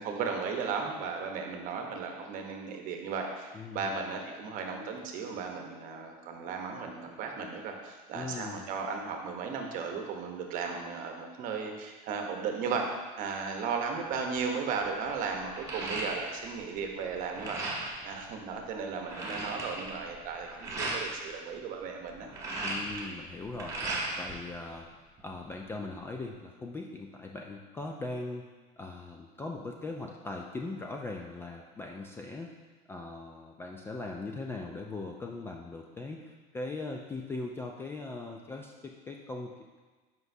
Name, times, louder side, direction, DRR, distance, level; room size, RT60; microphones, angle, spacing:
voice 1, 0.0-12.9 13.2-22.3, right 5 dB, 45° right, 3 dB, 0.9 m, -35 dB
voice 2, 3.5-3.9 8.1-8.7 22.6-23.8 24.2-24.9 25.2-28.5 28.8-32.5 32.9-39.8, left 3 dB, 10° left, 1 dB, 0.3 m, -40 dB
sound 1, 14.1-14.4 14.8-16.6 16.9-18.0 18.5-18.6 18.8-21.0 22.1-24.3 24.7-25.5, right 2 dB, 15° right, 1.2 m, -36 dB
7.9 x 5.3 x 2.7 m, 1.3 s
supercardioid pair, 145°, 19 cm